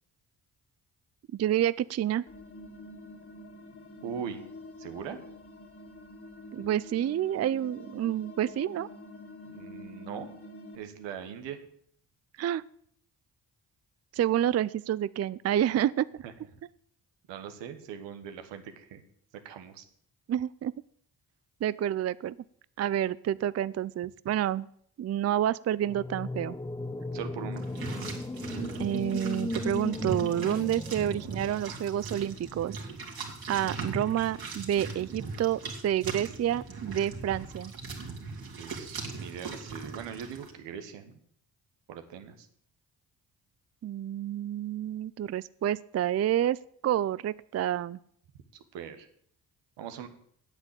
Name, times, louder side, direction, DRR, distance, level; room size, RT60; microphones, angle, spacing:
voice 1, 1.3-2.2 6.5-8.9 12.4-12.6 14.1-16.1 20.3-20.7 21.6-22.3 22.8-24.7 25.0-26.6 28.8-32.8 33.5-37.7 43.8-46.6 46.8-48.0, right 11 dB, 40° right, 19 dB, 0.4 m, -29 dB
sound 1, 2.3-10.8, left 2 dB, 30° left, 2.3 m, -47 dB
voice 2, 4.0-4.4 4.8-5.2 9.5-10.3 10.7-11.6 16.2-16.3 17.3-19.0 19.4-19.8 27.1-27.6 38.6-41.2 41.9-42.5 48.5-49.1 49.8-50.1, right 8 dB, 85° right, 8 dB, 1.4 m, -40 dB
sound 2, 25.8-32.0, left 2 dB, 10° left, 0.9 m, -37 dB
sound 3, 27.5-40.5, right 4 dB, 55° right, 3.1 m, -39 dB
9.0 x 8.1 x 8.5 m, 0.64 s
supercardioid pair, 50°, 43 cm